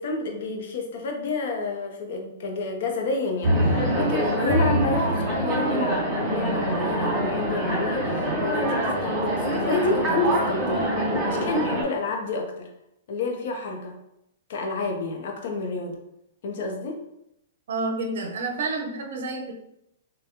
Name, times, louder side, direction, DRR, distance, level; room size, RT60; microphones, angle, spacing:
voice 1, 0.0-10.9 11.3-12.7 13.1-14.0 14.5-16.0 16.4-17.0, left 3 dB, 60° left, 3 dB, 0.7 m, -29 dB
sound 1, 3.4-11.8, right 1 dB, 20° right, 1.3 m, -24 dB
voice 2, 17.7-19.5, right 3 dB, 65° right, 2 dB, 0.5 m, -29 dB
3.4 x 2.2 x 2.7 m, 0.82 s
hypercardioid pair, 130°, 0 cm